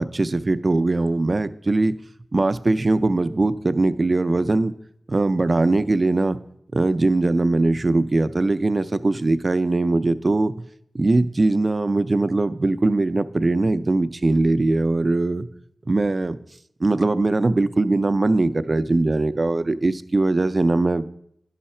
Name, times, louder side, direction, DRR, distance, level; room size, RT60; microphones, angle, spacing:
voice 1, 0.0-1.9 2.3-4.7 5.1-6.4 6.7-10.5 10.9-15.5 15.9-16.4 16.8-21.0, right 2 dB, 40° right, 12 dB, 0.4 m, -21 dB
11.0 x 5.6 x 4.3 m, 0.72 s
wide cardioid pair, 75°, 0 cm